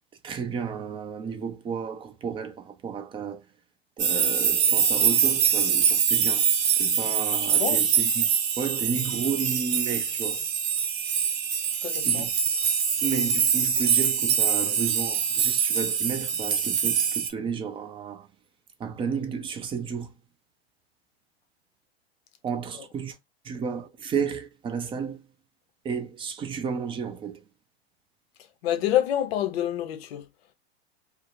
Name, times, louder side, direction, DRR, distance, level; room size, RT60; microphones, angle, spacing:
voice 1, 0.2-3.4 4.0-6.4 6.8-8.3 8.6-10.4 12.0-12.3 13.0-18.3 18.8-20.1 22.4-23.1 23.4-25.2 25.8-27.4, right 6 dB, 15° right, 0.4 m, -32 dB
sound 1, 4.0-17.3, right 7 dB, 55° right, 0.8 m, -24 dB
voice 2, 7.4-7.9 11.8-12.3 28.6-30.3, left 11 dB, 70° left, 0.6 m, -27 dB
2.4 x 2.0 x 2.8 m
hypercardioid pair, 105°, 32 cm